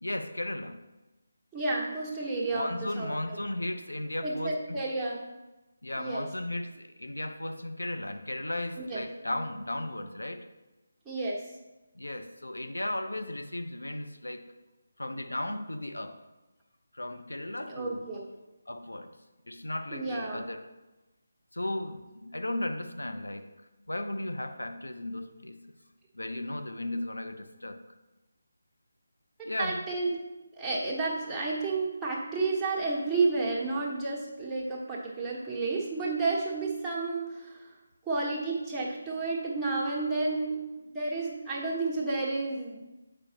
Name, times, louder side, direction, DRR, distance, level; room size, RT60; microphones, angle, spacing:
voice 1, 0.0-0.8 2.5-4.8 5.8-10.5 11.9-14.5 15.0-16.2 16.9-18.1 18.7-19.2 19.5-20.6 21.5-23.5 23.9-25.7 26.1-27.8 29.4-29.8, left 1 dB, 85° left, 7 dB, 0.5 m, -35 dB
voice 2, 1.5-3.1 4.2-5.2 6.0-6.2 8.7-9.0 11.0-11.4 17.7-18.2 19.9-20.4 29.6-30.2 30.6-37.7 38.1-40.6 40.9-42.8, right 3 dB, 5° right, -7 dB, 1.0 m, -31 dB
7.3 x 4.9 x 2.8 m, 1.1 s
figure-of-eight pair, 155°, 0 cm